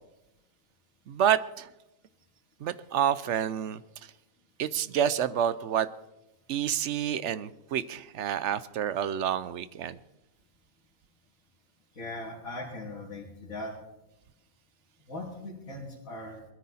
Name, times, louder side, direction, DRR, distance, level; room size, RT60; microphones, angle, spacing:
voice 1, 1.1-1.7 2.6-3.8 4.6-5.9 6.5-10.0, right 9 dB, 65° right, 16 dB, 0.9 m, -28 dB
voice 2, 11.9-13.7 15.1-16.4, left 2 dB, 80° left, -5 dB, 3.3 m, -39 dB
21.0 x 13.5 x 4.2 m, 0.93 s
omnidirectional pair, 1.4 m